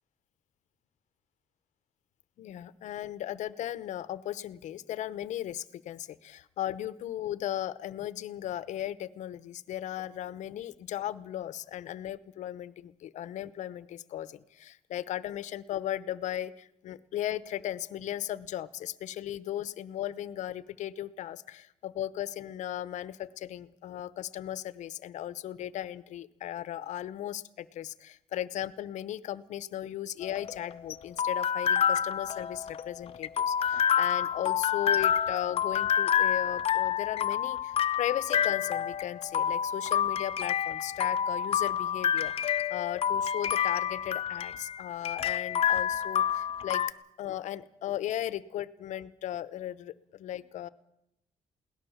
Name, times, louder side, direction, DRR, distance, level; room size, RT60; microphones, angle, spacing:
voice 1, 2.4-50.7, left 12 dB, 80° left, 17 dB, 0.9 m, -36 dB
sound 1, 30.2-46.9, left 9 dB, 55° left, 0.7 m, -28 dB
22.5 x 17.5 x 7.2 m, 0.79 s
cardioid pair, 160°, 12 cm